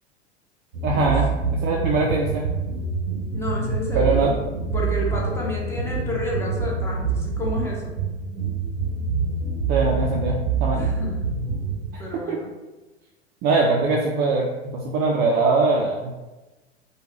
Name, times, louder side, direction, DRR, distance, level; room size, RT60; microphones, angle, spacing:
sound 1, 0.7-11.9, right 4 dB, 85° right, 0.6 m, -26 dB
voice 1, 0.8-2.4 3.9-4.3 9.7-10.8 11.9-12.0 12.3-12.4 13.4-16.1, right 3 dB, 30° right, -2 dB, 0.4 m, -22 dB
voice 2, 3.3-4.4 4.7-7.9 10.7-11.3 12.0-12.5, left 2 dB, 5° left, -4 dB, 0.8 m, -31 dB
3.2 x 2.3 x 3.1 m, 1.1 s
figure-of-eight pair, 85°, 34 cm